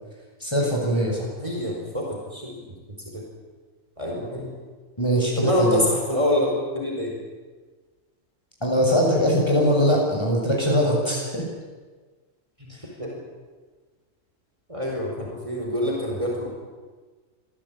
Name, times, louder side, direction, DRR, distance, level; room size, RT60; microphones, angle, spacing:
voice 1, 0.4-1.3 5.0-5.8 8.6-11.4 12.7-12.8, equal, 20° left, -2 dB, 6.8 m, -21 dB
voice 2, 1.4-3.2 4.0-4.5 5.4-7.2 12.6-12.7 13.0-13.2 14.7-16.5, left 1 dB, 25° right, -2 dB, 4.7 m, -26 dB
26.0 x 16.0 x 8.8 m, 1.4 s
omnidirectional pair, 1.4 m